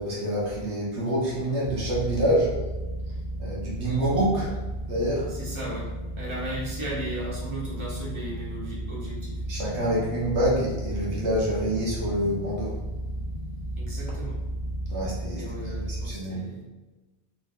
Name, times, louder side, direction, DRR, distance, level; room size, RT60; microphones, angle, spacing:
voice 1, 0.0-2.5 3.4-4.5 4.9-5.3 9.5-12.8 14.9-16.4, right 1 dB, 80° right, -5 dB, 1.6 m, -27 dB
sound 1, 1.6-16.1, right 1 dB, 45° left, 1.3 m, -34 dB
voice 2, 5.3-5.9 6.2-9.4 13.8-14.4 15.4-16.6, right 1 dB, 25° right, -7 dB, 1.5 m, -36 dB
4.6 x 4.2 x 2.6 m, 1.2 s
omnidirectional pair, 1.1 m